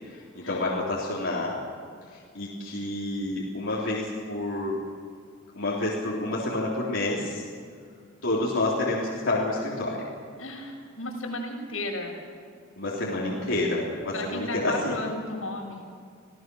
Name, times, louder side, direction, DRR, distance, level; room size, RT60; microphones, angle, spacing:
voice 1, 0.1-1.6 2.3-4.8 5.5-7.4 8.2-10.1 12.8-14.9, left 2 dB, 65° left, -5 dB, 3.6 m, -28 dB
voice 2, 10.4-12.2 14.1-15.8, left 1 dB, 90° left, -1 dB, 6.4 m, -34 dB
27.5 x 17.5 x 6.4 m, 2.2 s
head